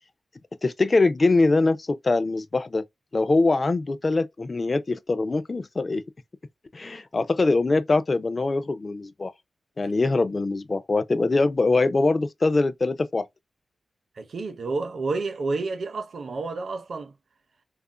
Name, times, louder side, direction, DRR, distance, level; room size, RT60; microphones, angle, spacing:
voice 1, 0.6-2.8 3.1-6.0 6.7-9.3 9.8-13.3, left 3 dB, 30° left, 0.3 m, -23 dB
voice 2, 14.2-17.1, right 3 dB, 55° right, 0.5 m, -30 dB
2.4 x 2.0 x 3.6 m
wide cardioid pair, 175°, 0 cm